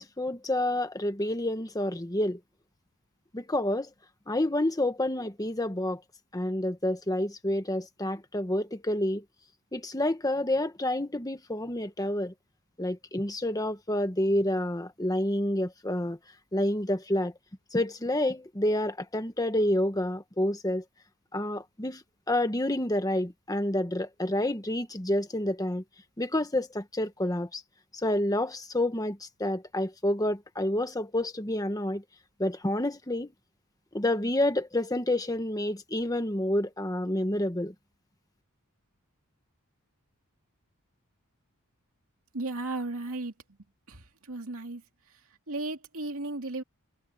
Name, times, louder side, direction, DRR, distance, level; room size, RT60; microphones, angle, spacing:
voice 1, 0.0-2.4 3.3-3.9 4.3-6.0 6.3-9.2 9.7-12.3 12.8-16.2 16.5-17.3 17.7-20.8 21.3-25.8 26.2-27.6 27.9-32.0 32.4-33.3 33.9-37.7, left 1 dB, 15° left, 1.5 m, -29 dB
voice 2, 42.3-43.3 43.9-44.8 45.5-46.6, right 2 dB, 70° right, 2.7 m, -35 dB
head